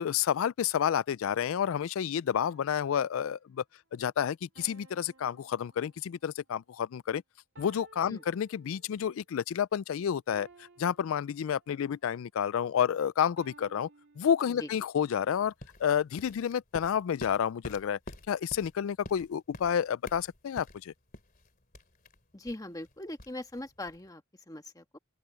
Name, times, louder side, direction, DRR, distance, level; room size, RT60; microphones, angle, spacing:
voice 1, 0.0-3.6 3.9-7.2 7.6-10.5 10.8-13.9 14.2-15.5 15.8-18.0 18.3-20.9, left 8 dB, 70° left, 0.3 m, -30 dB
sound 1, 2.4-3.2 4.6-6.4 7.6-9.2 10.3-12.0 13.4-15.0, right 3 dB, 60° right, 2.0 m, -58 dB
sound 2, 15.3-24.1, left 1 dB, 40° left, 2.9 m, -49 dB
voice 2, 22.3-25.0, left 1 dB, 15° left, 1.4 m, -41 dB
open air
head